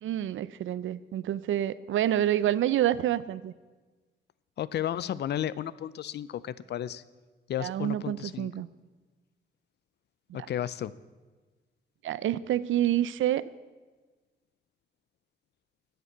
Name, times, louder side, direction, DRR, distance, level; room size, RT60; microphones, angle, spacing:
voice 1, 0.0-3.5 7.6-8.7 10.3-10.5 12.0-13.5, right 12 dB, 90° right, 18 dB, 0.5 m, -28 dB
voice 2, 4.6-7.0 7.5-8.5 10.3-10.9, left 11 dB, 60° left, 19 dB, 0.4 m, -33 dB
12.5 x 8.1 x 7.2 m, 1.3 s
wide cardioid pair, 180°, 20 cm